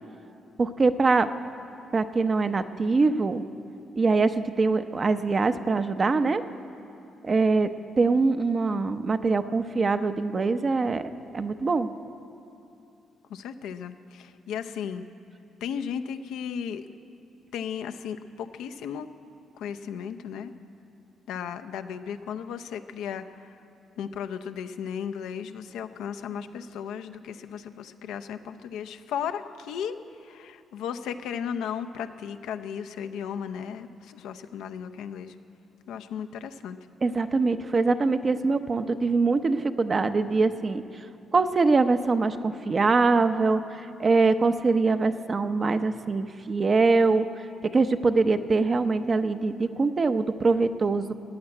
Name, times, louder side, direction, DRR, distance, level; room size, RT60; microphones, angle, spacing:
voice 1, 0.6-1.3 1.9-3.4 4.0-6.4 7.2-7.7 8.0-11.9 37.0-40.8 41.3-43.6 44.0-47.3 47.7-51.1, right 3 dB, 35° right, 10 dB, 0.7 m, -23 dB
voice 2, 13.3-15.1 15.6-16.9 17.5-19.1 19.6-20.5 21.3-23.5 24.0-35.3 35.9-36.8, left 8 dB, 85° left, 8 dB, 0.6 m, -35 dB
14.5 x 8.9 x 9.6 m, 2.7 s
cardioid pair, 90°, 0 cm